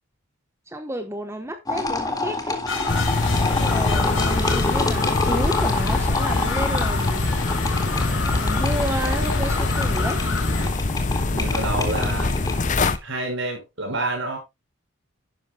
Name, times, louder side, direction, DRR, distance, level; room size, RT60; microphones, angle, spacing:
voice 1, 0.7-2.6 3.4-7.6 7.8-10.2 11.6-12.2, right 1 dB, 10° right, 1.0 m, -32 dB
sound 1, 1.7-13.0, left 3 dB, 15° left, 1.8 m, -28 dB
sound 2, 2.7-10.7, left 3 dB, 60° left, 4.2 m, -30 dB
sound 3, 2.9-13.0, left 2 dB, 35° left, 0.7 m, -24 dB
voice 2, 11.3-12.4 13.0-14.4, right 2 dB, 55° right, 5.5 m, -28 dB
11.0 x 10.5 x 2.2 m
head